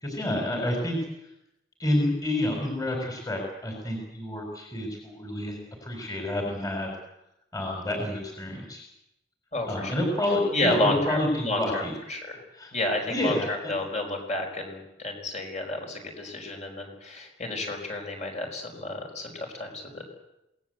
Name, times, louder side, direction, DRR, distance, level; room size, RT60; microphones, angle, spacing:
voice 1, 0.0-1.0 1.8-6.9 7.5-8.9 9.7-11.9 12.5-12.7 13.1-13.7, left 1 dB, 20° left, 1 dB, 4.4 m, -29 dB
voice 2, 9.5-9.9 10.5-12.4 12.7-20.0, left 1 dB, 35° left, 2 dB, 5.2 m, -31 dB
26.5 x 18.5 x 8.0 m, 0.89 s
head